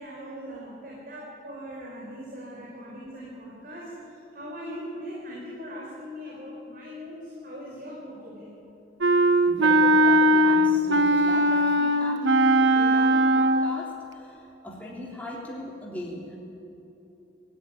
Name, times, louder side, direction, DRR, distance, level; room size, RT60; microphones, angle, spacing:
voice 1, 0.0-3.9 4.3-8.5 12.9-13.1, equal, 50° right, -4 dB, 5.2 m, -40 dB
Wind instrument woodwind instrument, 9.0-13.8, right 1 dB, 85° right, 1.1 m, -20 dB
voice 2, 9.5-16.4, left 1 dB, 10° left, -4 dB, 3.4 m, -39 dB
26.5 x 16.0 x 9.6 m, 2.9 s
head